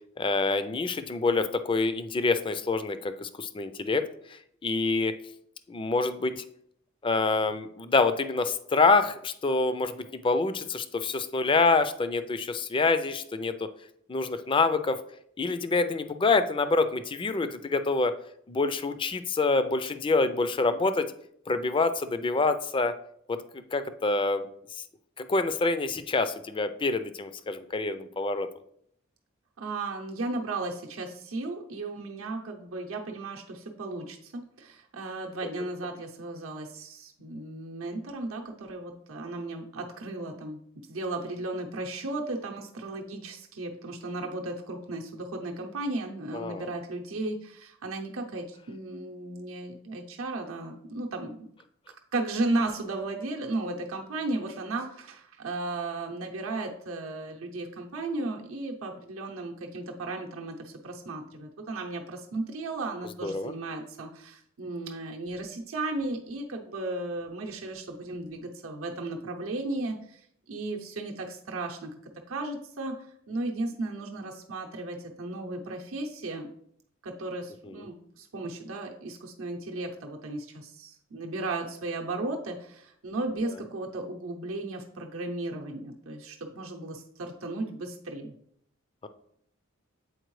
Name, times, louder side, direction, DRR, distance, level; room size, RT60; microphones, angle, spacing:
voice 1, 0.2-4.1 4.6-5.1 5.7-6.3 7.0-13.7 14.1-15.0 15.4-18.1 18.5-21.1 21.5-22.9 23.3-24.5 25.2-28.5 46.3-46.7 63.2-63.5 89.0-89.1, left 3 dB, 25° left, 10 dB, 0.4 m, -26 dB
voice 2, 29.6-40.6 40.9-51.5 52.1-71.9 72.3-76.5 77.0-88.3, right 2 dB, 70° right, 1 dB, 0.7 m, -35 dB
7.8 x 4.4 x 3.1 m, 0.68 s
head